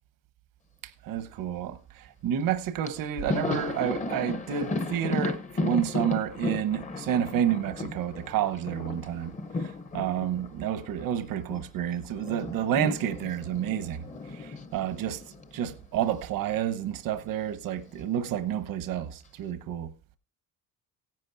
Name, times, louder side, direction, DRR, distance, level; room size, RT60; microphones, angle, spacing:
voice 1, 0.8-14.0 14.3-15.2 15.5-19.9, right 10 dB, 80° right, 1.1 m, -30 dB
Thunder, 2.5-2.6 2.8-11.7 11.9-16.2 16.5-16.7 17.8-18.5, left 3 dB, 20° left, 0.7 m, -35 dB
17.0 x 10.5 x 2.6 m
cardioid pair, 165°, 33 cm